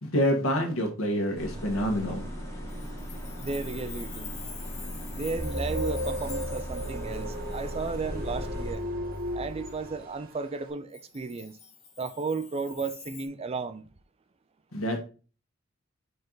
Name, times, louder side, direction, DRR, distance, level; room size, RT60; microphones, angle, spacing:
voice 1, 0.0-2.3 14.7-15.0, equal, 80° left, 1.5 m, -27 dB
sound 1, 1.4-8.7, equal, 15° left, 2.3 m, -38 dB
Chime, 2.7-8.8 9.2-9.3 10.9-13.3, left 7 dB, 35° left, 1.1 m, -46 dB
voice 2, 3.4-4.4 5.1-8.8 9.3-11.6 12.0-13.8, right 4 dB, 30° right, 0.4 m, -34 dB
sound 2, 5.4-10.4, equal, 45° right, 1.4 m, -34 dB
5.4 x 4.4 x 3.9 m
head